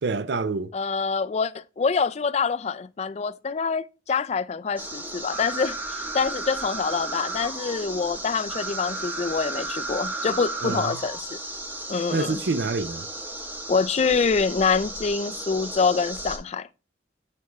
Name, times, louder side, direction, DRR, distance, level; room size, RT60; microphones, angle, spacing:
voice 1, 0.0-0.7 10.6-11.0 12.1-13.0, right 4 dB, 70° right, 0.5 m, -27 dB
voice 2, 0.7-11.4 11.9-12.4 13.7-16.7, left 5 dB, 35° left, 0.3 m, -26 dB
sound 1, 4.8-16.4, right 2 dB, 10° right, 0.8 m, -34 dB
8.5 x 4.6 x 3.1 m
head